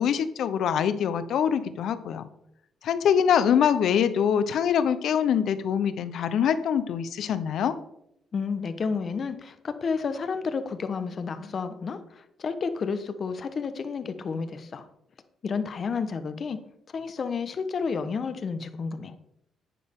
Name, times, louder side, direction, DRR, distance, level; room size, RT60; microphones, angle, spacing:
voice 1, 0.0-2.3 2.8-7.7, left 8 dB, 70° left, 12 dB, 0.9 m, -24 dB
voice 2, 8.3-14.8 15.4-16.6 16.9-19.1, left 5 dB, 45° left, 10 dB, 1.2 m, -31 dB
11.0 x 9.4 x 3.7 m, 0.77 s
cardioid pair, 90°, 0 cm